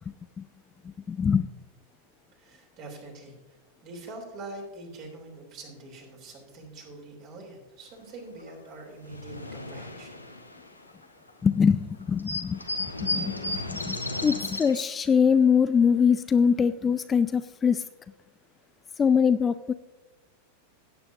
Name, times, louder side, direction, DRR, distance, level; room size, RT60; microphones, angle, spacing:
voice 1, 0.8-1.5 11.4-17.8 19.0-19.7, left 6 dB, 20° left, 13 dB, 0.3 m, -23 dB
voice 2, 2.3-3.6 3.8-10.2, right 2 dB, 40° right, 1 dB, 3.5 m, -44 dB
sound 1, 8.5-8.6 8.8-11.3 11.7-11.8 12.0-14.8, left 2 dB, 85° left, 1.1 m, -34 dB
16.5 x 8.8 x 2.8 m, 1.1 s
figure-of-eight pair, 90°, 0 cm